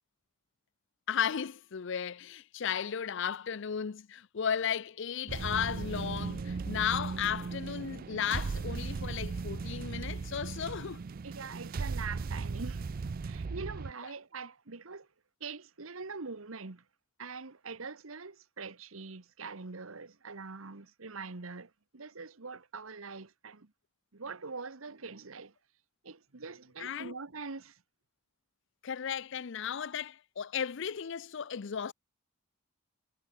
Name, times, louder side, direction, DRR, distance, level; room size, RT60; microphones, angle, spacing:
voice 1, 1.1-11.0 26.8-27.1 28.8-31.9, left 8 dB, 60° left, 0.5 m, -35 dB
sound 1, 5.3-13.9, right 4 dB, 45° right, 0.4 m, -37 dB
voice 2, 11.2-12.9 13.3-15.1 15.4-16.8 17.2-23.7 24.1-25.5 26.0-27.8, right 4 dB, 80° right, 1.3 m, -43 dB
head